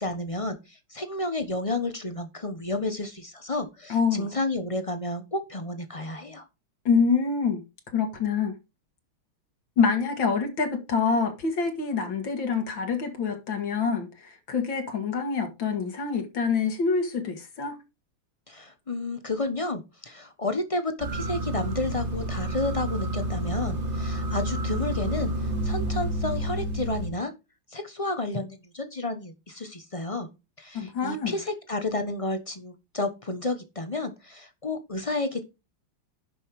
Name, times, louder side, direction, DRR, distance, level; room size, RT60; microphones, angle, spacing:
voice 1, 0.0-6.5 18.5-25.3 25.6-27.3 27.7-30.3 30.6-35.4, left 2 dB, 35° left, 0.5 m, -31 dB
voice 2, 3.9-4.2 6.9-7.6 7.9-8.5 9.8-17.8 30.7-31.3, left 5 dB, 60° left, 2.3 m, -26 dB
sound 1, 21.0-27.1, right 1 dB, 35° right, 1.9 m, -29 dB
11.0 x 5.5 x 4.7 m
omnidirectional pair, 2.4 m